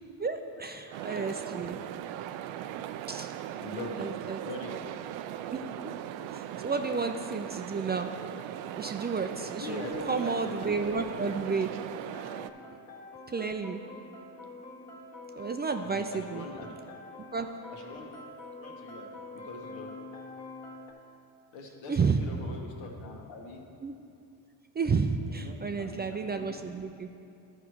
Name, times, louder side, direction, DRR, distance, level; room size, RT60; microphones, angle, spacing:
voice 1, 0.2-1.8 3.1-3.3 4.0-4.4 5.5-5.9 6.3-8.1 8.8-11.7 12.7-12.8 13.3-13.8 15.4-16.5 17.3-17.5 21.9-22.2 23.8-23.9 24.7-27.1, right 5 dB, 25° right, 6 dB, 0.4 m, -31 dB
sound 1, 0.9-12.5, right 11 dB, 75° right, 0.5 m, -39 dB
voice 2, 1.0-1.8 3.6-4.1 4.4-4.8 9.6-11.5 12.4-12.5 15.8-16.8 17.7-18.1 18.6-19.9 21.5-23.6 25.2-26.7, left 2 dB, 70° left, 1 dB, 1.5 m, -42 dB
sound 2, 11.9-20.9, left 2 dB, 35° left, 1.5 m, -46 dB
12.5 x 4.9 x 4.6 m, 2.6 s
supercardioid pair, 70°, 46 cm